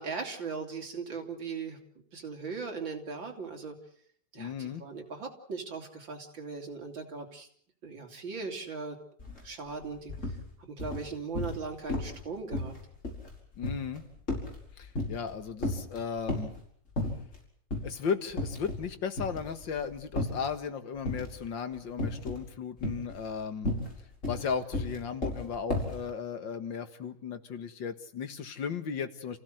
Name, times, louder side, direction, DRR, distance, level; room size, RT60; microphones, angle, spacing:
voice 1, 0.0-1.8 2.1-3.8 4.3-7.5 7.8-9.0 9.4-10.2 10.6-12.7, right 4 dB, 85° right, 2 dB, 4.1 m, -38 dB
voice 2, 4.4-4.9 13.6-14.0 14.8-16.5 17.8-23.7 24.3-29.4, left 6 dB, 80° left, 9 dB, 2.3 m, -35 dB
sound 1, 9.2-9.4 9.7-10.4 10.8-11.6 11.9-12.2 12.5-15.3 15.6-16.6 17.0-17.4 17.7-17.9 18.3-18.9 19.2-20.5 21.0-21.5 22.0-22.4 22.8-26.0, left 2 dB, 40° left, 6.0 m, -33 dB
29.0 x 16.0 x 7.9 m, 0.63 s
omnidirectional pair, 2.0 m